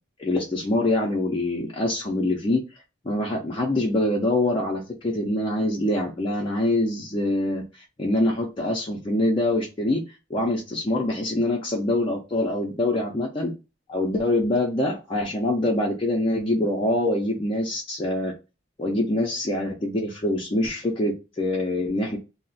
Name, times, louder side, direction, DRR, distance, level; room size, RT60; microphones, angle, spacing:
voice 1, 0.2-2.6 3.0-13.5 13.9-18.3 18.8-22.2, left 1 dB, 25° left, -2 dB, 0.4 m, -25 dB
2.4 x 2.0 x 3.8 m, 0.29 s
head